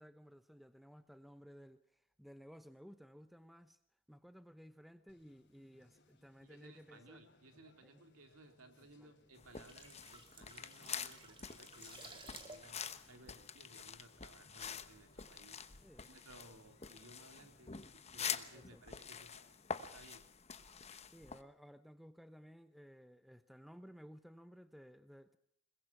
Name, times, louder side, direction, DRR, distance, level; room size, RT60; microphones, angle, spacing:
voice 1, 0.0-3.8 4.1-7.2 7.8-8.0 9.0-9.1 15.8-16.1 18.5-18.8 21.1-25.4, equal, ahead, 0.8 m, -57 dB
Conversation, 5.1-19.9, left 2 dB, 55° left, 3.7 m, -70 dB
voice 2, 6.4-15.6 16.0-19.3 19.7-20.2, right 2 dB, 75° right, 3.3 m, -60 dB
sound 1, 9.4-21.4, left 7 dB, 30° left, 1.1 m, -47 dB
sound 2, 9.4-14.2 14.5-14.7, right 3 dB, 25° right, 2.7 m, -56 dB
22.0 x 21.5 x 5.8 m
head